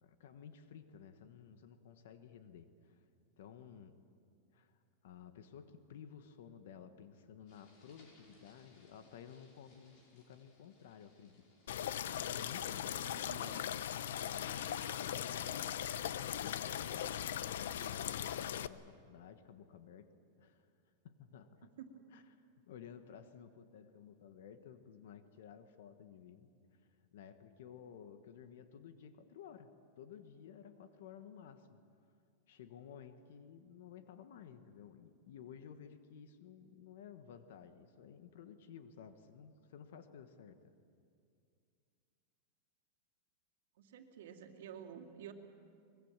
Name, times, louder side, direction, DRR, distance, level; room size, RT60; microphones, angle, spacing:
voice 1, 0.0-3.0 3.4-4.0 4.5-4.8 5.0-11.4 12.0-13.8 14.3-15.6 16.4-20.1 20.4-20.7 21.0-21.7 22.1-22.2 22.7-26.5 27.1-31.8 32.5-40.7, left 8 dB, 70° left, 9 dB, 1.4 m, -54 dB
sound 1, 7.5-15.7, left 2 dB, 40° left, 5.9 m, -67 dB
sound 2, 11.7-18.7, left 10 dB, 85° left, 0.7 m, -39 dB
voice 2, 12.0-12.5 12.8-13.7 21.6-22.0 43.8-45.3, right 8 dB, 75° right, 4 dB, 2.5 m, -52 dB
24.0 x 22.0 x 7.4 m, 2.4 s
supercardioid pair, 165°, 0 cm